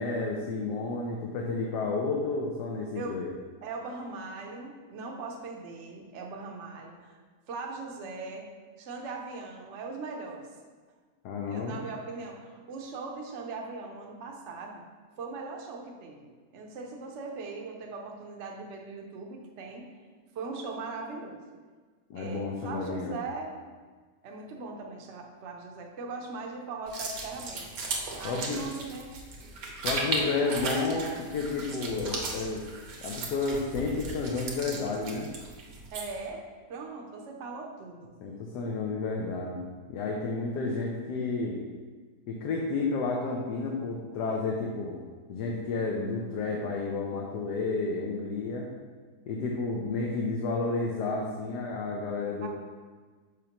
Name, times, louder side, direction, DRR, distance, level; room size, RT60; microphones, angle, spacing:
voice 1, 0.0-3.3 11.2-11.8 22.1-23.2 28.2-28.6 29.8-32.6 33.0-35.3 38.2-41.6 42.3-45.0 45.3-48.7 49.3-52.5, left 3 dB, 75° left, -1 dB, 1.3 m, -31 dB
voice 2, 3.6-7.2 7.5-8.5 8.8-10.5 11.5-14.8 15.2-19.9 20.3-21.4 22.1-23.6 24.2-27.6 28.2-29.1 30.0-30.3 35.9-36.4 36.7-38.1 52.4-52.5, right 3 dB, 55° right, 1 dB, 0.9 m, -40 dB
sound 1, 26.9-36.3, right 3 dB, 75° right, 1.5 m, -36 dB
6.5 x 5.0 x 2.9 m, 1.5 s
omnidirectional pair, 1.8 m